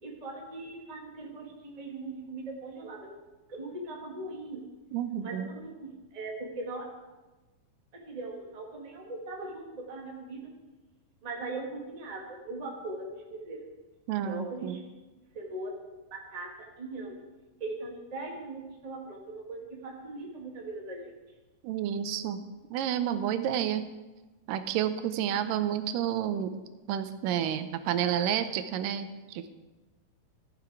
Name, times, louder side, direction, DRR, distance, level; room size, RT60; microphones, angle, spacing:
voice 1, 0.0-3.2 3.5-4.6 5.2-6.8 7.9-10.5 11.2-13.7 14.2-14.8 15.3-15.8 16.1-16.5 16.8-17.2 17.6-21.1, right 2 dB, 20° right, -1 dB, 0.9 m, -40 dB
voice 2, 4.9-5.5 14.1-14.8 21.6-22.4 22.7-23.9 24.5-26.6 26.9-29.5, right 10 dB, 90° right, 11 dB, 2.3 m, -30 dB
14.5 x 6.9 x 4.7 m, 1.2 s
omnidirectional pair, 3.8 m